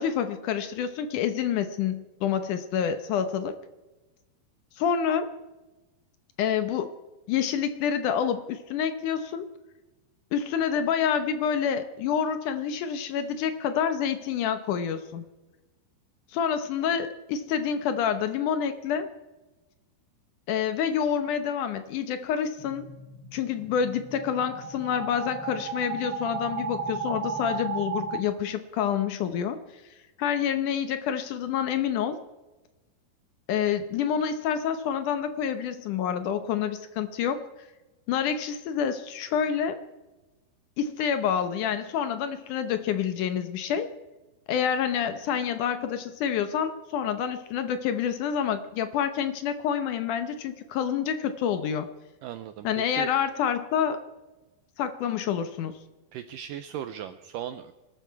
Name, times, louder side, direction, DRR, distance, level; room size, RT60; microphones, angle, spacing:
voice 1, 0.0-3.6 4.8-5.3 6.4-6.9 7.3-9.5 10.3-15.3 16.3-19.1 20.5-22.9 23.3-29.6 30.2-32.2 33.5-37.4 38.1-39.8 40.8-43.9 44.5-51.9 52.6-54.0 54.8-55.8, left 8 dB, 75° left, 9 dB, 1.9 m, -28 dB
sound 1, 22.6-28.2, right 5 dB, 50° right, 1.4 m, -35 dB
voice 2, 52.2-53.1 56.1-57.7, right 10 dB, 90° right, 10 dB, 1.9 m, -37 dB
22.0 x 13.0 x 4.7 m, 1.1 s
omnidirectional pair, 4.6 m